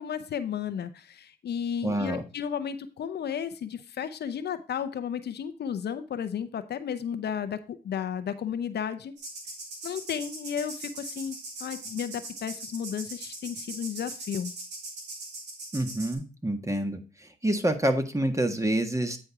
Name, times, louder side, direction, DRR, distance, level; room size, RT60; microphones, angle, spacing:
voice 1, 0.0-9.1 9.8-14.5, left 8 dB, 70° left, 11 dB, 0.7 m, -33 dB
voice 2, 1.8-2.2 15.7-17.0 17.4-19.2, right 1 dB, 15° right, 6 dB, 1.6 m, -27 dB
sound 1, 9.2-16.1, right 2 dB, 90° right, 1.9 m, -41 dB
9.2 x 4.4 x 4.7 m, 0.34 s
supercardioid pair, 45°, 17 cm